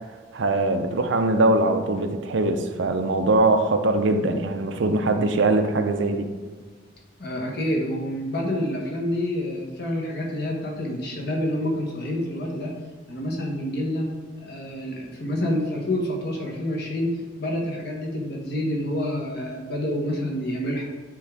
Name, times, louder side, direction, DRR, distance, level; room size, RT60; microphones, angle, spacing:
voice 1, 0.3-6.3, right 2 dB, 65° right, 7 dB, 0.6 m, -22 dB
voice 2, 7.2-12.7 13.1-14.1 14.4-20.8, left 1 dB, 55° left, 0 dB, 1.3 m, -28 dB
9.2 x 3.7 x 3.4 m, 1.4 s
head